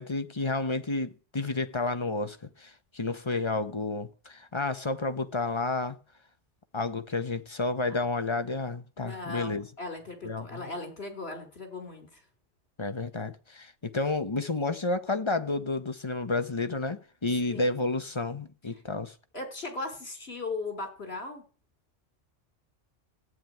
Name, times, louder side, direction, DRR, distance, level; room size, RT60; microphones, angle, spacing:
voice 1, 0.0-6.0 6.7-9.7 10.2-10.7 12.8-19.1, left 3 dB, 25° left, 0.9 m, -31 dB
voice 2, 9.0-12.2 17.5-17.7 19.3-21.4, left 3 dB, 55° left, 3.6 m, -38 dB
14.5 x 5.2 x 9.2 m
omnidirectional pair, 1.2 m